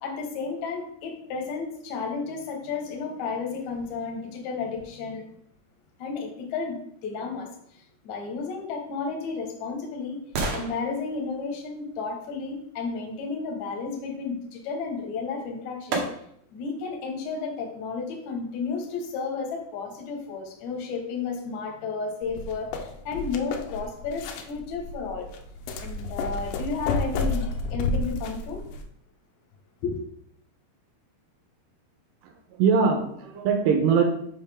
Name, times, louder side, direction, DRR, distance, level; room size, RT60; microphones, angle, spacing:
voice 1, 0.0-5.3 6.0-10.2 10.5-16.0 16.5-25.3 25.8-28.6 29.8-30.0, left 4 dB, 65° left, 2 dB, 2.0 m, -32 dB
sound 1, 8.8-12.9 15.0-15.1 15.9-16.6 17.1-17.2, right 3 dB, 65° right, 2.5 m, -35 dB
sound 2, 22.2-28.8, left 3 dB, 80° left, 2.8 m, -31 dB
voice 2, 32.2-34.1, right 6 dB, 85° right, 3 dB, 2.9 m, -22 dB
7.2 x 5.6 x 3.5 m, 0.68 s
omnidirectional pair, 4.9 m